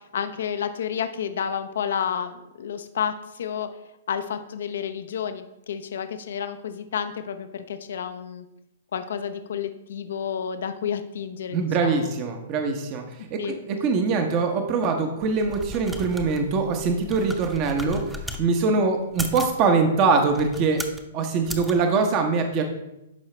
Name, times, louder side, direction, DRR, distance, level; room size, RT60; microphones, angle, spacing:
voice 1, 0.1-3.7 4.1-8.4 8.9-12.1 13.4-13.6, left 8 dB, 70° left, 9 dB, 0.6 m, -30 dB
voice 2, 11.5-18.0 18.4-20.8 21.1-22.6, right 4 dB, 40° right, 5 dB, 0.9 m, -23 dB
sound 1, 15.3-18.4 19.0-19.6 20.3-21.0 21.4-21.7, right 1 dB, 5° right, 0.8 m, -36 dB
11.5 x 4.8 x 3.3 m, 0.91 s
hypercardioid pair, 125°, 0 cm